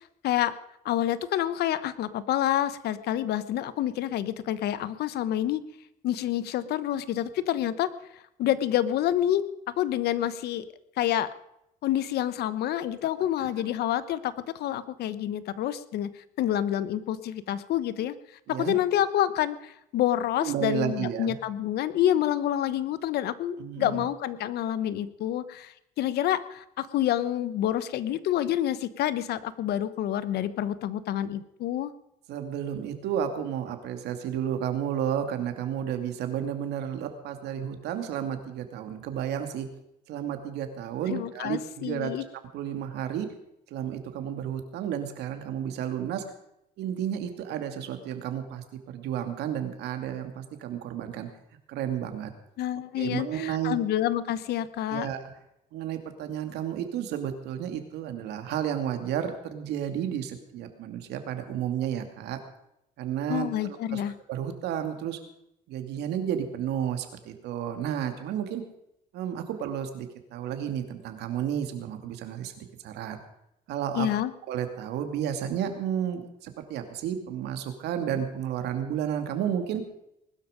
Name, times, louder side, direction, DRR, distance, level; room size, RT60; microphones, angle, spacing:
voice 1, 0.8-5.6 6.0-7.9 8.4-9.4 9.8-10.6 11.0-11.3 11.8-16.1 16.4-18.1 18.5-31.9 41.1-42.2 52.6-55.1 63.3-64.1 73.9-74.3, left 12 dB, 70° left, 15 dB, 1.1 m, -28 dB
voice 2, 20.4-21.3 23.6-24.0 32.3-39.7 40.1-43.3 43.7-46.2 46.8-51.3 51.7-52.3 53.0-53.8 54.9-55.3 55.7-62.4 63.0-64.0 64.3-65.2 65.7-68.6 69.1-73.2 73.7-74.1 74.5-79.8, right 9 dB, 80° right, 7 dB, 2.5 m, -32 dB
20.5 x 12.5 x 5.2 m, 0.80 s
cardioid pair, 110°, 17 cm